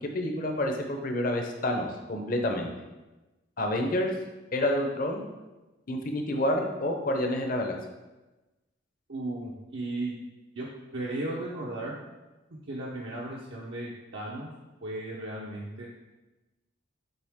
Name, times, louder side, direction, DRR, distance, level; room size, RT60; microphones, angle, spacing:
voice 1, 0.0-2.7 3.6-4.1 4.5-5.3 5.9-7.7, left 1 dB, 45° left, 3 dB, 0.8 m, -28 dB
voice 2, 9.1-10.2 10.6-10.7 10.9-12.0 12.7-14.5 14.8-15.9, right 2 dB, 65° right, -4 dB, 0.8 m, -35 dB
8.0 x 3.9 x 3.6 m, 1.1 s
head